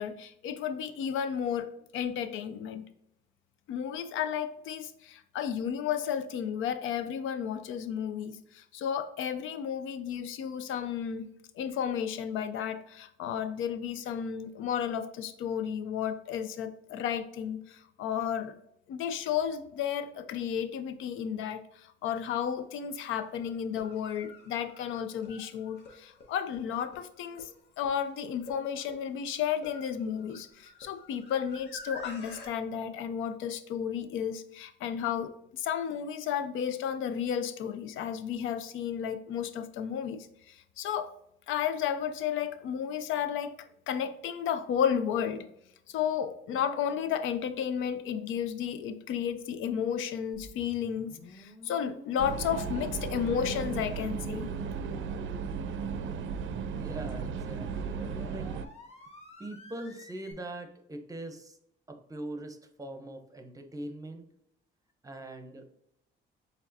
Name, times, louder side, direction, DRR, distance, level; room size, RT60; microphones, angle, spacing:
voice 1, 0.0-2.9 3.7-11.3 11.6-18.5 18.9-27.5 27.8-35.3 35.6-41.1 41.5-43.6 43.9-45.5 45.9-54.5, left 8 dB, 85° left, 11 dB, 0.5 m, -33 dB
sound 1, 22.5-22.6 23.6-32.5, left 2 dB, 60° left, 1.2 m, -49 dB
sound 2, 50.3-60.3, left 1 dB, 30° left, 1.2 m, -50 dB
sound 3, 52.2-58.7, right 6 dB, 75° right, 0.5 m, -35 dB
voice 2, 56.7-58.5 59.4-61.6 61.9-64.3 65.0-65.7, right 1 dB, 15° right, 6 dB, 0.7 m, -42 dB
4.6 x 3.4 x 2.7 m, 0.76 s
cardioid pair, 90°, 20 cm